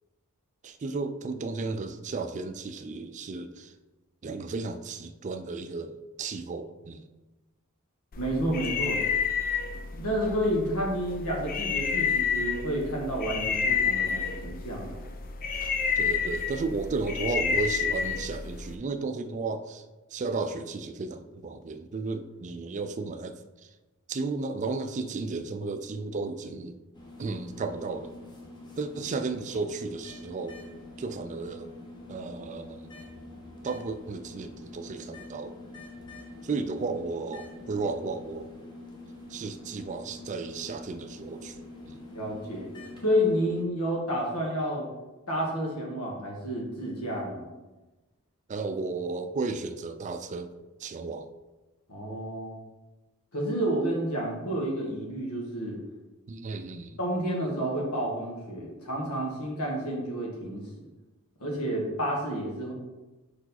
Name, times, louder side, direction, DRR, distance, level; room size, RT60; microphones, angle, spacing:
voice 1, 0.6-3.7 4.2-7.0 16.0-19.8 20.1-23.4 24.1-26.7 27.2-28.1 28.8-30.6 31.0-31.7 32.1-32.9 33.6-35.6 36.4-38.5 39.3-41.5 41.9-42.1 48.5-50.5 50.8-51.3 56.3-57.0, right 3 dB, 35° right, 10 dB, 0.4 m, -34 dB
sound 1, 8.1-18.7, left 6 dB, 40° left, 0.4 m, -30 dB
voice 2, 8.2-9.0 10.0-15.0 42.1-42.7 43.0-44.9 45.3-47.5 51.9-52.6 53.3-55.8 57.0-60.7 61.4-62.7, equal, 90° left, -2 dB, 1.6 m, -30 dB
sound 2, 26.9-43.6, left 2 dB, 20° left, 1.0 m, -46 dB
4.9 x 4.6 x 4.2 m, 1.1 s
head